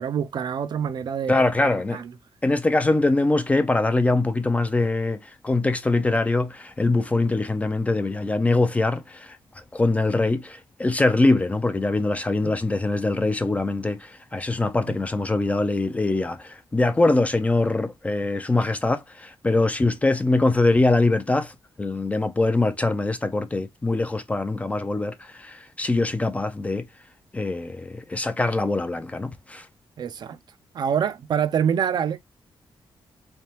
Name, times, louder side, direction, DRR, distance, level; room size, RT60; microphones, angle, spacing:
voice 1, 0.0-1.4 1.9-2.1 12.4-12.5 14.9-15.0 30.0-30.4 30.7-32.2, right 8 dB, 50° right, 0.4 m, -25 dB
voice 2, 1.3-2.0 2.4-9.4 9.7-21.5 21.8-26.9 27.3-29.7, left 2 dB, 15° left, 0.4 m, -23 dB
3.7 x 3.3 x 2.9 m
wide cardioid pair, 180°, 9 cm